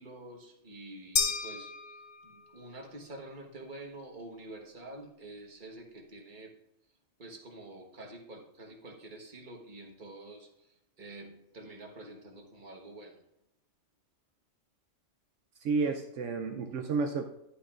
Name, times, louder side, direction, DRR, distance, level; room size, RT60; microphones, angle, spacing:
voice 1, 0.0-1.7 2.2-6.5 7.2-10.5 11.0-13.2, right 2 dB, 40° right, 2 dB, 1.4 m, -47 dB
sound 1, 1.2-2.6, left 5 dB, 40° left, 0.8 m, -32 dB
voice 2, 15.6-17.3, right 4 dB, 75° right, 5 dB, 1.0 m, -31 dB
11.5 x 8.9 x 2.4 m, 0.84 s
omnidirectional pair, 1.3 m